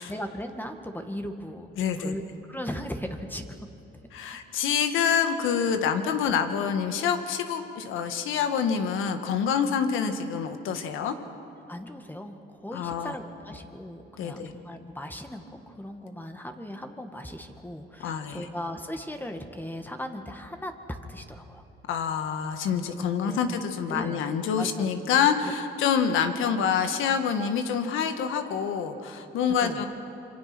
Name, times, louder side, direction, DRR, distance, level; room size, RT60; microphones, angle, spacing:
voice 1, 0.0-2.2 2.5-3.7 4.3-4.4 11.7-21.6 22.9-23.5 23.9-24.9 29.6-29.9, equal, 10° left, 5 dB, 1.8 m, -38 dB
voice 2, 1.8-2.1 4.1-11.1 12.7-13.1 14.2-14.5 18.0-18.4 21.9-29.9, left 7 dB, 90° left, 7 dB, 1.6 m, -27 dB
26.0 x 24.0 x 6.1 m, 2.8 s
cardioid pair, 90°, 20 cm